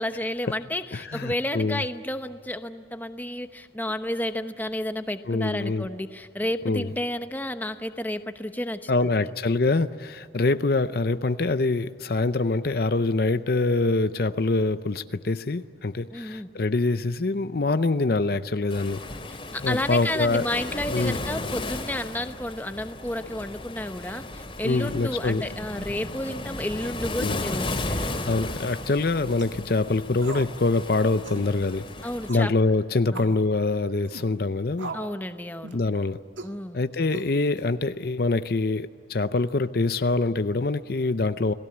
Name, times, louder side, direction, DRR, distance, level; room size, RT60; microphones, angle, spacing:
voice 1, 0.0-9.3 16.1-16.5 19.5-28.4 32.0-32.5 33.1-33.3 34.9-35.8 36.4-36.8, left 1 dB, 10° left, 9 dB, 0.9 m, -31 dB
voice 2, 0.9-1.8 5.3-5.9 6.6-6.9 8.9-19.0 19.6-20.5 20.9-21.2 24.6-25.4 27.2-27.5 28.2-31.9 32.3-34.9 35.7-36.2 36.7-41.5, left 3 dB, 50° left, 12 dB, 0.6 m, -25 dB
Waves surf, 18.7-32.3, left 2 dB, 30° left, 2.6 m, -35 dB
sound 1, 29.3-29.6 30.2-30.5 30.8-30.9 31.2-31.5 32.3-32.5 33.1-33.4 34.1-34.3 34.8-35.2 35.6-35.9 36.4-36.6 37.1-37.6, right 3 dB, 90° right, 1.8 m, -39 dB
29.5 x 19.0 x 8.6 m, 2.2 s
head